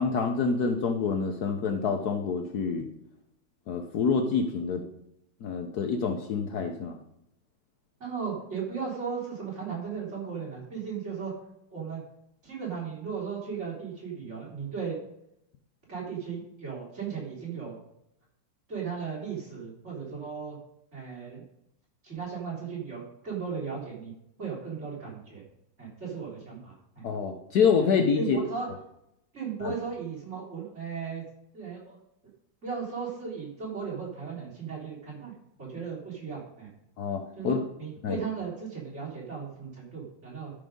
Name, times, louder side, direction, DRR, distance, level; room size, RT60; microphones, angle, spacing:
voice 1, 0.0-2.9 3.7-4.8 5.4-7.0 27.0-28.4 29.6-29.7 37.0-37.6 38.0-38.2, left 5 dB, 65° left, 5 dB, 1.2 m, -27 dB
voice 2, 8.0-11.3 11.7-12.0 12.4-15.0 15.9-17.8 18.7-20.6 20.9-21.4 22.0-24.1 24.4-25.4 25.8-27.0 28.1-28.7 29.3-31.2 31.5-32.0 32.6-36.7 37.4-40.5, right 6 dB, 35° right, -4 dB, 3.6 m, -36 dB
12.5 x 5.2 x 5.2 m, 0.79 s
omnidirectional pair, 2.0 m